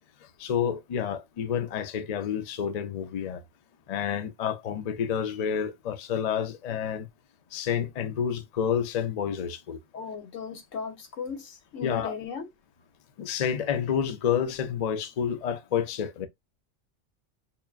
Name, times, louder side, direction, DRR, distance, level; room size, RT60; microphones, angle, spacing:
voice 1, 0.4-3.4 3.9-7.1 7.5-9.8 11.8-12.1 13.2-16.3, left 8 dB, 55° left, 0.4 m, -29 dB
voice 2, 9.9-12.5, left 6 dB, 90° left, 1.2 m, -36 dB
5.6 x 2.3 x 2.4 m
omnidirectional pair, 1.3 m